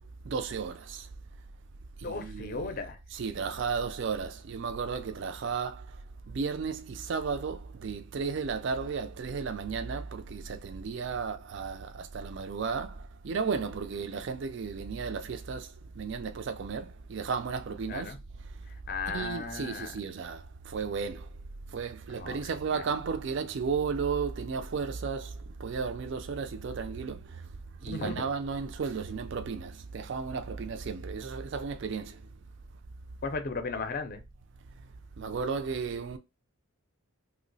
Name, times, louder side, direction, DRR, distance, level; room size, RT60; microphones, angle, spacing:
voice 1, 0.3-1.1 2.0-2.7 3.1-5.9 6.3-15.7 16.0-18.1 19.1-21.3 21.7-27.4 27.8-32.2 35.2-36.2, right 5 dB, 55° right, 0.4 m, -34 dB
voice 2, 2.0-3.0 17.9-18.2 18.9-19.9 22.1-22.4 22.7-22.8 27.9-28.2 33.2-34.2, left 4 dB, 40° left, 0.5 m, -35 dB
3.0 x 2.0 x 3.9 m
head